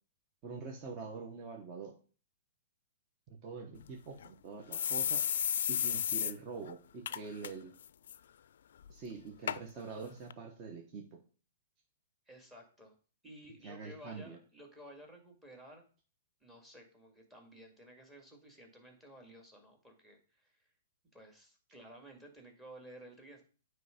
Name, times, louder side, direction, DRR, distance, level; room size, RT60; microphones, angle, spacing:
voice 1, 0.4-1.9 3.3-5.2 5.7-7.7 8.9-11.2 13.6-14.4, right 4 dB, 35° right, 1 dB, 1.2 m, -45 dB
sound 1, 3.8-3.9 4.2-4.3 4.7-6.3 6.7-6.8 7.1-7.5 7.8-8.2 8.8-8.9 9.5-9.6 10.3-10.4, left 9 dB, 70° left, 0.4 m, -33 dB
voice 2, 12.3-12.9 13.2-15.9 16.4-20.5 21.1-23.4, equal, 10° right, 3 dB, 2.0 m, -54 dB
9.1 x 3.4 x 5.2 m, 0.39 s
hypercardioid pair, 130°, 0 cm